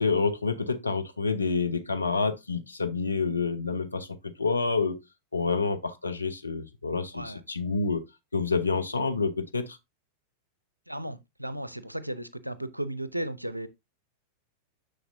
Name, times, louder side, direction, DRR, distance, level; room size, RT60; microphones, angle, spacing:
voice 1, 0.0-5.0 5.3-8.0 8.3-9.8, left 4 dB, 80° left, 0.7 m, -28 dB
voice 2, 10.9-13.7, right 1 dB, 90° right, 0.6 m, -35 dB
6.5 x 6.2 x 2.6 m
figure-of-eight pair, 90°, 0 cm